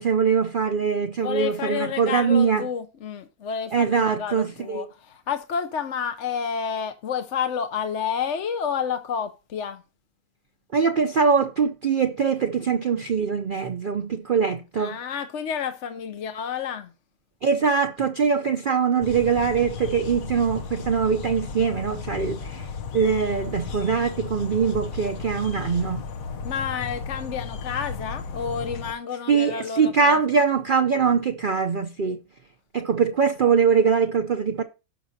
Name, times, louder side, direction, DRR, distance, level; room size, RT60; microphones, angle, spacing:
voice 1, 0.0-2.7 3.7-4.9 10.7-15.0 17.4-22.7 22.9-26.0 29.3-32.2 32.7-34.6, right 6 dB, 50° right, 0.7 m, -22 dB
voice 2, 1.2-9.8 14.8-16.9 26.4-30.2, left 7 dB, 60° left, 1.0 m, -30 dB
sound 1, 19.0-28.9, left 6 dB, 85° left, 1.4 m, -35 dB
17.0 x 6.2 x 2.7 m
omnidirectional pair, 1.4 m